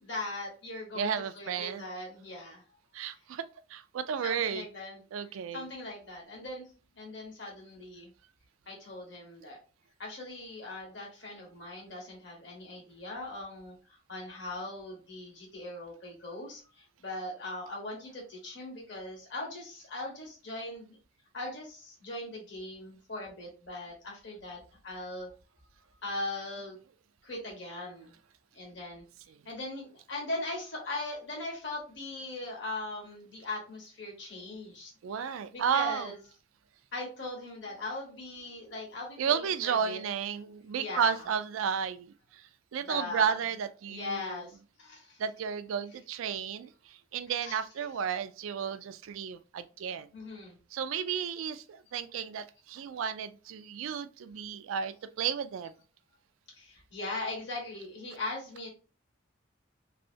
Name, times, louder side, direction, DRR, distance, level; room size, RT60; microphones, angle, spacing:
voice 1, 0.0-2.6 4.2-5.0 5.5-6.7 6.9-8.1 8.7-9.6 10.0-21.0 21.3-25.3 26.0-26.8 27.2-28.2 28.5-29.0 29.4-36.2 36.9-40.0 40.8-41.3 42.8-43.5 43.9-45.2 45.9-46.0 47.3-47.9 50.1-50.6 56.5-58.7, left 2 dB, 60° left, 1.4 m, -40 dB
voice 2, 0.9-1.9 2.9-3.4 3.7-4.6 5.1-5.7 29.3-29.4 35.0-36.1 39.2-42.4 42.7-44.4 45.2-46.7 47.1-50.1 50.7-55.7, right 7 dB, 80° right, 0.3 m, -32 dB
3.1 x 2.6 x 2.7 m
head